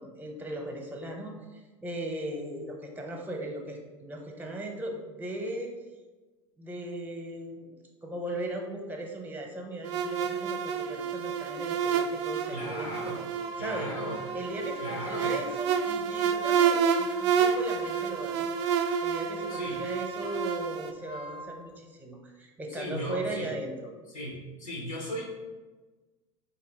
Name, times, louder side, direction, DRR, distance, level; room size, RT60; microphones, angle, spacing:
voice 1, 0.0-5.7 6.6-7.7 8.0-13.0 13.6-13.9 14.3-18.5 19.0-23.9, right 1 dB, 10° right, 2 dB, 0.8 m, -38 dB
sound 1, 9.8-20.9, right 7 dB, 60° right, 0.4 m, -29 dB
voice 2, 12.5-13.2 13.6-14.2 14.8-15.3 19.5-19.8 22.7-23.5 24.1-25.2, left 1 dB, 80° left, -3 dB, 1.2 m, -36 dB
sound 2, 13.1-21.5, right 1 dB, 40° left, 0.5 m, -43 dB
4.2 x 2.9 x 4.0 m, 1.2 s
hypercardioid pair, 80°, 16 cm